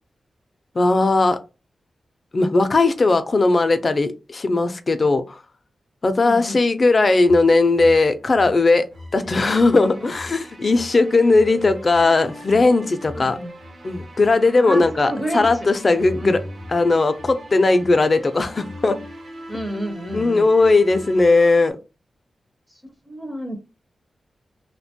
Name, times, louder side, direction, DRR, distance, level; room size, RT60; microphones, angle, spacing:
voice 1, 0.8-1.4 2.3-5.4 6.0-8.9 9.1-13.4 13.8-16.4 16.7-19.0 20.1-21.8, left 3 dB, 40° left, 10 dB, 0.4 m, -18 dB
voice 2, 2.4-2.7 6.2-6.6 13.1-13.5 14.6-15.5 16.2-16.4 19.5-20.5 23.1-23.6, equal, 15° right, 5 dB, 0.5 m, -30 dB
sound 1, 7.3-21.7, equal, 60° right, 0.6 m, -39 dB
2.8 x 2.1 x 2.7 m, 0.30 s
wide cardioid pair, 90°, 0 cm